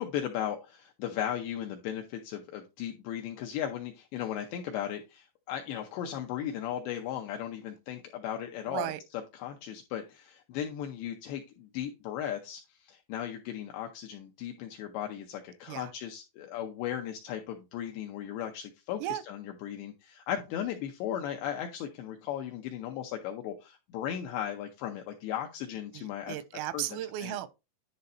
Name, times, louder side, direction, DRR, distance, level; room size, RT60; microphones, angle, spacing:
voice 1, 0.0-26.4 26.7-26.8 27.2-27.4, left 10 dB, 80° left, 2.5 m, -36 dB
voice 2, 8.6-9.0 15.7-15.9 19.0-19.2 25.9-27.5, right 13 dB, 90° right, 3.3 m, -35 dB
10.5 x 4.0 x 4.2 m
omnidirectional pair, 5.9 m